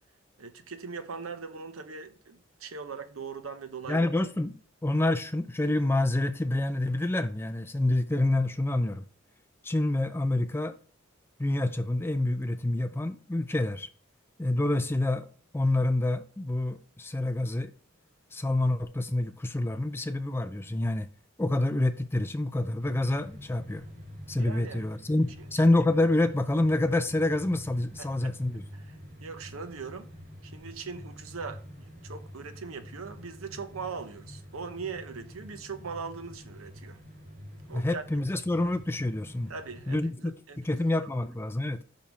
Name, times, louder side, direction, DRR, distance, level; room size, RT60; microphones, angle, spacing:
voice 1, 0.4-4.1 24.4-24.9 25.4-25.5 28.0-28.3 28.7-29.0 29.2-30.1 30.4-37.0 37.7-38.0 39.5-40.9, right 5 dB, 85° right, 0.8 m, -40 dB
voice 2, 3.9-4.5 4.8-9.0 9.6-10.8 11.4-13.9 14.4-15.3 15.5-17.7 18.3-21.1 21.4-23.8 24.3-28.6 37.7-39.5 39.9-41.8, left 2 dB, 10° left, 0.4 m, -27 dB
sound 1, 22.8-40.1, equal, 40° right, 2.3 m, -47 dB
5.7 x 5.2 x 4.6 m
head